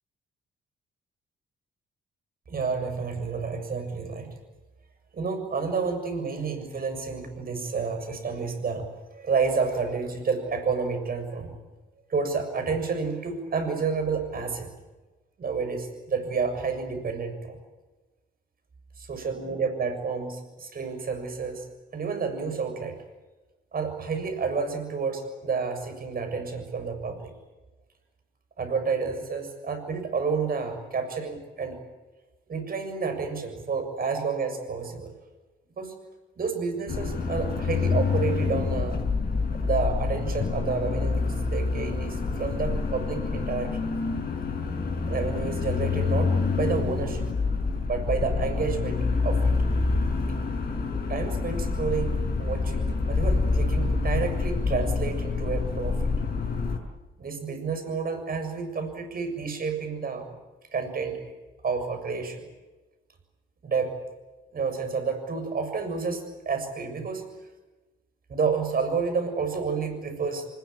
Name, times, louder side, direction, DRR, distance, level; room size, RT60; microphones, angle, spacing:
voice 1, 2.5-4.3 5.1-11.5 12.1-14.7 15.4-17.6 19.0-21.7 21.9-22.9 23.7-27.3 28.6-31.8 32.5-35.1 35.8-35.9 36.4-39.0 39.6-41.2 41.5-43.8 45.1-47.3 47.9-49.6 51.1-56.1 57.2-60.2 60.7-61.2 61.6-62.4 63.6-64.0 64.5-67.2 68.3-70.5, right 5 dB, 45° right, 6 dB, 7.0 m, -30 dB
sound 1, 36.9-56.8, left 4 dB, 50° left, 5.8 m, -27 dB
25.5 x 21.0 x 8.7 m, 1.2 s
cardioid pair, 105°, 21 cm